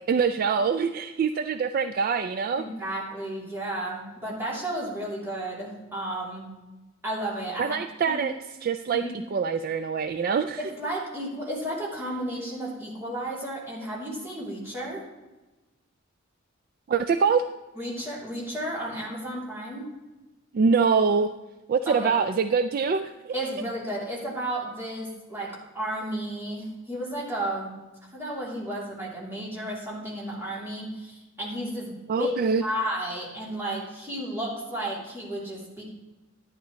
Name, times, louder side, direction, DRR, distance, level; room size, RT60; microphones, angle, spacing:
voice 1, 0.1-2.6 7.6-8.3 8.6-9.0 9.3-10.6 16.9-17.4 20.5-21.3 21.7-23.3 32.1-32.6, right 5 dB, 45° right, 10 dB, 0.3 m, -24 dB
voice 2, 2.6-6.5 7.0-7.8 8.1-8.2 8.9-9.1 10.6-15.0 17.8-19.9 21.9-22.3 23.3-27.8 28.1-32.3 32.6-35.8, right 1 dB, 10° right, -5 dB, 2.9 m, -33 dB
11.5 x 10.0 x 3.1 m, 1.1 s
head